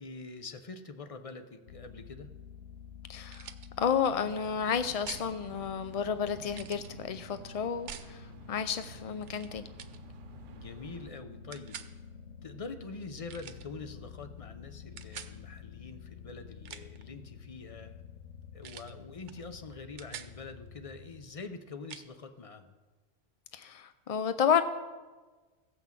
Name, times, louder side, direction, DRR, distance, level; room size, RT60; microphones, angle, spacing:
voice 1, 0.0-2.3 10.5-11.8 12.4-18.0 18.5-22.7, left 3 dB, 35° left, 8 dB, 0.7 m, -45 dB
sound 1, 1.7-21.3, left 6 dB, 85° left, 1.0 m, -50 dB
voice 2, 3.1-3.5 3.8-9.7 23.5-24.6, left 7 dB, 65° left, 11 dB, 0.3 m, -31 dB
sound 2, 3.3-3.7 5.1-5.3 6.5-6.9 7.9-8.1 9.2-9.5 9.8-10.0 11.5-11.9 13.3-13.7 15.0-15.3 16.5-17.0 18.6-18.9 19.3-19.4 19.7-20.3 21.9-22.1, right 8 dB, 85° right, 1.0 m, -45 dB
sound 3, 4.2-11.1, right 7 dB, 55° right, 0.7 m, -53 dB
16.0 x 6.0 x 7.3 m, 1.3 s
omnidirectional pair, 1.2 m